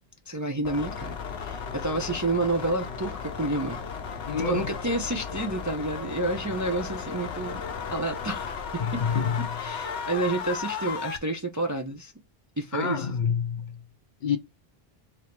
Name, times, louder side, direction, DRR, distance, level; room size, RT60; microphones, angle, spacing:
voice 1, 0.3-3.8 4.4-7.6 7.9-9.1 9.4-12.1 12.6-13.1, right 2 dB, 25° right, 0.4 m, -30 dB
sound 1, 0.6-11.2, left 6 dB, 85° left, 1.0 m, -35 dB
voice 2, 4.3-4.6 8.8-9.5 12.7-13.8 14.2-14.4, left 7 dB, 55° left, 0.6 m, -27 dB
3.4 x 2.6 x 4.3 m
omnidirectional pair, 1.1 m